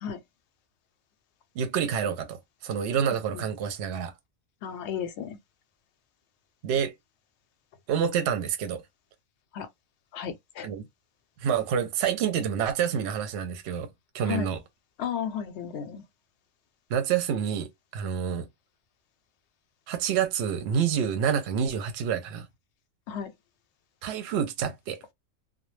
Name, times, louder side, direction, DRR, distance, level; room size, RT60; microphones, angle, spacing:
voice 1, 1.6-4.1 6.6-6.9 7.9-8.8 10.6-10.9 11.4-14.6 16.9-18.5 19.9-22.5 24.0-25.0, right 8 dB, 65° right, 0.7 m, -28 dB
voice 2, 4.6-5.4 9.5-9.7 10.1-10.7 14.3-14.5 15.0-16.0 23.1-23.3, left 8 dB, 65° left, 0.8 m, -33 dB
2.3 x 2.1 x 3.1 m
omnidirectional pair, 1.4 m